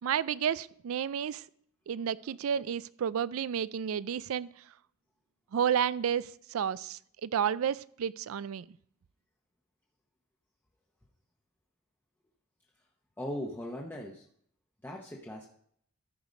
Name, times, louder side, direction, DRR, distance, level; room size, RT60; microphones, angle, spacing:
voice 1, 0.0-1.4 1.9-4.5 5.5-8.7, right 8 dB, 75° right, 19 dB, 0.4 m, -31 dB
voice 2, 13.2-14.2 14.8-15.5, left 1 dB, 10° left, -2 dB, 0.9 m, -39 dB
13.0 x 4.9 x 5.2 m, 0.65 s
head